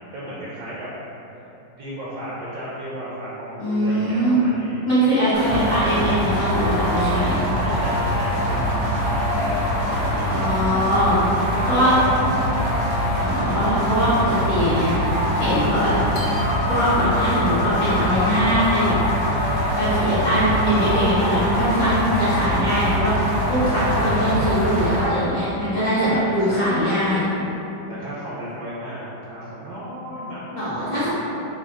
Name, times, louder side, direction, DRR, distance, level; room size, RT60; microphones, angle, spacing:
voice 1, 0.1-0.9 1.3-1.4 1.7-4.8 5.3-5.8 7.6-9.6 9.9-10.7 11.5-12.8 23.6-24.6 26.0-26.9 27.9-30.4 30.7-31.1, right 1 dB, 70° right, -8 dB, 1.1 m, -34 dB
voice 2, 3.6-4.4 4.9-7.5 10.3-11.2 11.7-12.0 13.2-14.9 15.4-15.9 16.6-19.0 19.7-23.1 23.5-27.2 30.5-31.1, equal, 50° left, -12 dB, 0.5 m, -21 dB
sound 1, 5.3-25.1, equal, 85° right, 1.6 m, -23 dB
sound 2, 14.5-21.2, left 5 dB, 70° left, 0.8 m, -32 dB
3.5 x 2.3 x 3.4 m, 3.0 s
omnidirectional pair, 1.9 m